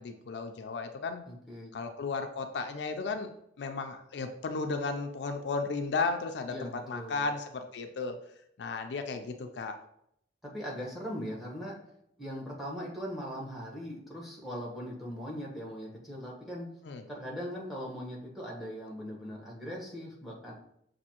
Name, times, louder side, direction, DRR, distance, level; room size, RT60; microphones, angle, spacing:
voice 1, 0.0-1.2 1.7-3.3 3.6-8.2 8.6-9.8 16.8-17.1, left 4 dB, 70° left, 6 dB, 0.4 m, -34 dB
voice 2, 1.3-1.8 6.5-7.2 10.5-11.8 12.2-16.7 17.1-20.5, equal, ahead, -3 dB, 1.0 m, -40 dB
6.2 x 2.6 x 2.8 m, 0.74 s
head